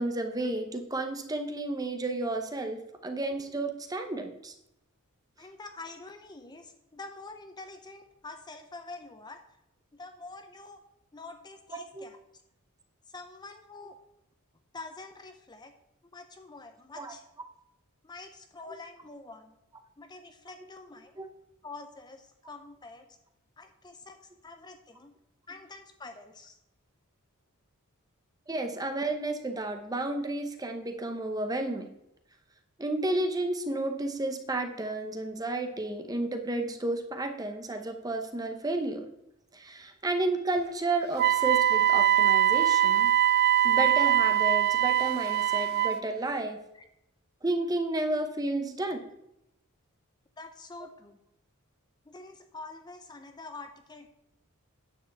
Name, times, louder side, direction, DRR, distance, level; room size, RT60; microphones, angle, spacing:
voice 1, 0.0-4.5 11.9-12.0 17.0-17.1 21.2-21.3 28.5-31.9 32.8-39.1 39.5-43.1 43.6-46.6 47.4-49.0, right 2 dB, 15° right, 6 dB, 0.8 m, -32 dB
voice 2, 5.4-9.4 9.9-10.8 11.1-12.2 13.1-14.0 14.7-15.7 16.1-17.2 18.0-19.5 20.0-21.2 21.6-23.2 23.6-25.1 25.5-26.6 46.7-46.9 50.4-51.2 52.1-54.1, left 3 dB, 20° left, 7 dB, 0.6 m, -46 dB
Wind instrument woodwind instrument, 41.2-46.0, right 11 dB, 45° right, 0.3 m, -23 dB
9.7 x 4.8 x 7.9 m, 0.83 s
head